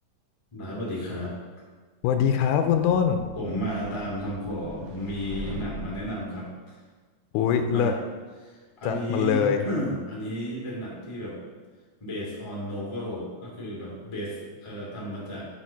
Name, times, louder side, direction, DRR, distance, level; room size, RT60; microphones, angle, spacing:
voice 1, 0.5-1.4 3.3-6.7 7.7-7.9 8.4-11.4 12.0-15.5, equal, 20° left, -5 dB, 0.8 m, -33 dB
voice 2, 2.0-3.2 7.3-7.9 8.8-9.6, left 8 dB, 80° left, 7 dB, 1.9 m, -23 dB
sound 1, 2.8-6.3, right 5 dB, 85° right, 1.6 m, -41 dB
5.7 x 5.0 x 5.6 m, 1.4 s
omnidirectional pair, 4.1 m